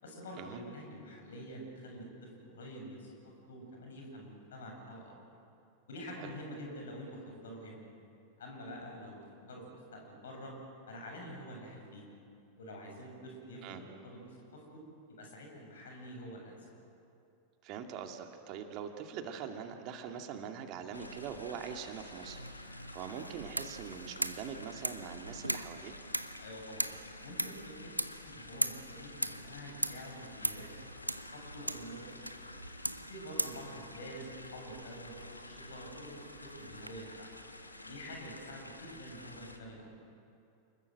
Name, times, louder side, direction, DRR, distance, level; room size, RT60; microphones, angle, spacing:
voice 1, 0.0-3.1 3.5-5.1 5.9-7.8 8.4-9.2 9.5-9.6 9.9-10.5 10.9-12.1 12.6-14.8 15.1-16.6 26.4-26.9 27.2-32.3 33.1-37.3 37.8-39.9, equal, 65° left, 1 dB, 7.7 m, -47 dB
voice 2, 17.6-22.4 22.7-25.9 33.3-33.5, right 7 dB, 40° right, 4 dB, 2.3 m, -43 dB
sound 1, 20.9-39.6, left 2 dB, 85° left, 1.8 m, -50 dB
sound 2, 22.3-36.9, right 1 dB, 85° right, 0.8 m, -40 dB
29.5 x 21.0 x 7.9 m, 2.6 s
figure-of-eight pair, 90°, 0 cm